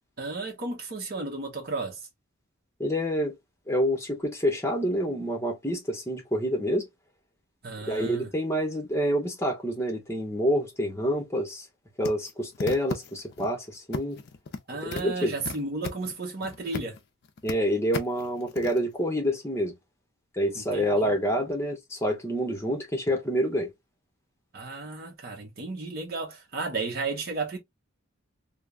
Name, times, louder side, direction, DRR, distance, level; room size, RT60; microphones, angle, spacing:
voice 1, 0.2-2.1 7.6-8.3 14.7-17.0 20.5-21.1 24.5-27.6, right 3 dB, 45° right, 0.8 m, -33 dB
voice 2, 2.8-3.3 3.7-6.9 7.8-11.7 12.0-14.2 14.8-15.4 17.4-19.8 20.3-23.7, equal, 10° left, 0.7 m, -27 dB
sound 1, 12.0-13.5 13.9-14.6 14.9-17.0 17.2-17.5 17.9-18.8, left 4 dB, 50° left, 0.4 m, -35 dB
3.2 x 2.0 x 2.3 m
head